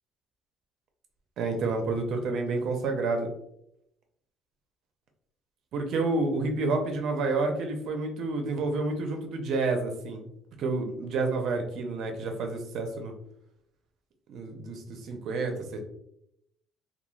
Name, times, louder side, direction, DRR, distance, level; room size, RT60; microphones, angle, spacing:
voice 1, 1.4-3.3 5.7-10.2 10.6-13.1 14.3-15.8, right 3 dB, 60° right, 4 dB, 0.5 m, -29 dB
3.0 x 2.2 x 2.3 m, 0.76 s
cardioid pair, 140°, 0 cm